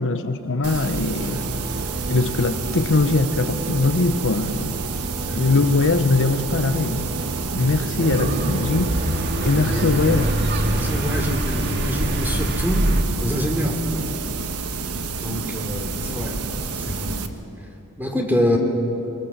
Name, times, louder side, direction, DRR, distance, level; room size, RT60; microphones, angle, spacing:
voice 1, 0.0-1.4 2.1-4.8 5.4-7.1 7.5-9.0 9.4-10.2, left 3 dB, 60° left, 0.9 m, -21 dB
sound 1, 0.6-17.3, right 4 dB, 80° right, 1.3 m, -29 dB
sound 2, 1.2-11.3, right 2 dB, 25° right, 0.8 m, -34 dB
voice 2, 5.2-5.6 7.6-8.0 9.6-9.9 10.6-12.9 13.2-13.8 15.2-16.4 16.7-17.2 18.0-18.6, left 1 dB, 10° right, 3.0 m, -26 dB
sound 3, 8.0-13.0, right 1 dB, 50° right, 1.8 m, -24 dB
24.5 x 22.5 x 7.3 m
head